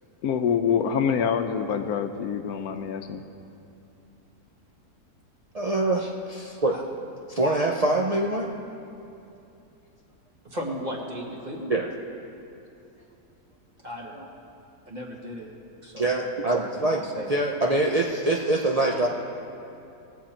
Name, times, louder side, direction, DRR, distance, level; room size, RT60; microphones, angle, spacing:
voice 1, 0.2-3.2, left 7 dB, 75° left, 7 dB, 1.1 m, -25 dB
voice 2, 5.5-6.8 7.3-8.5 11.7-11.9 16.0-17.0 17.3-19.1, right 2 dB, 60° right, -1 dB, 0.3 m, -24 dB
voice 3, 10.4-11.7 13.8-14.3 14.9-15.5 15.8-16.2 16.6-17.3, equal, 30° right, -2 dB, 1.5 m, -36 dB
19.5 x 7.4 x 4.4 m, 2.7 s
omnidirectional pair, 1.7 m